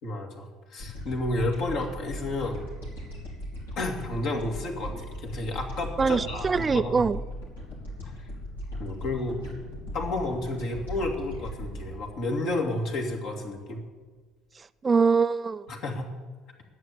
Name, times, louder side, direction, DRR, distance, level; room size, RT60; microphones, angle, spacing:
voice 1, 0.0-2.6 3.8-7.0 8.1-8.2 8.8-9.4 9.9-13.8 15.7-16.1, left 2 dB, 55° left, 2.3 m, -31 dB
sound 1, 0.8-13.3, equal, 80° left, 3.1 m, -38 dB
voice 2, 6.0-7.2 14.6-15.7, right 5 dB, 25° right, 0.3 m, -24 dB
11.0 x 7.9 x 8.6 m
figure-of-eight pair, 60°, 0 cm